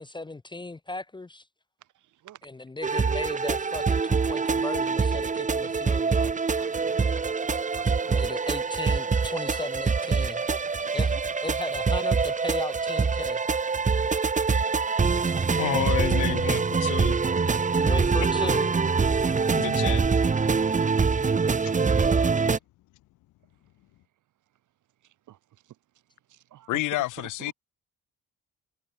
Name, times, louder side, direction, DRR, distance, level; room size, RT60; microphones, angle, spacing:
voice 1, 0.0-1.4 2.4-6.3 8.1-10.4 10.9-11.1 11.4-13.5 17.8-18.7 21.9-22.1, left 2 dB, 15° left, 0.8 m, -36 dB
voice 2, 1.8-2.5 4.5-4.7 5.1-5.2 5.6-5.9 6.2-7.2 7.7-7.9 9.4-9.5 10.5-10.6 10.9-11.2 16.3-16.6 17.5-17.6 25.0-25.8 26.3-27.5, right 13 dB, 80° right, 7.0 m, -48 dB
sound 1, 2.8-22.6, right 5 dB, 25° right, 1.2 m, -24 dB
voice 3, 15.6-17.2 18.4-18.5 19.5-20.0 21.6-21.7 26.7-27.5, left 17 dB, 80° left, 0.7 m, -30 dB
cardioid pair, 90°, 30 cm